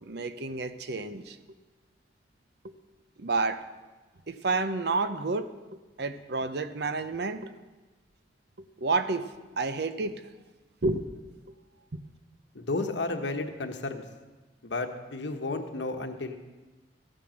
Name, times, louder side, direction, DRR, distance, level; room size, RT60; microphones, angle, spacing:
voice 1, 0.0-1.4 2.6-2.7 3.2-3.6 4.3-7.5 8.6-10.2 10.8-11.1 11.9-12.0, right 3 dB, 65° right, 11 dB, 0.7 m, -30 dB
voice 2, 12.5-14.0 14.6-16.4, left 2 dB, 80° left, 6 dB, 1.2 m, -32 dB
14.5 x 9.0 x 6.4 m, 1.2 s
head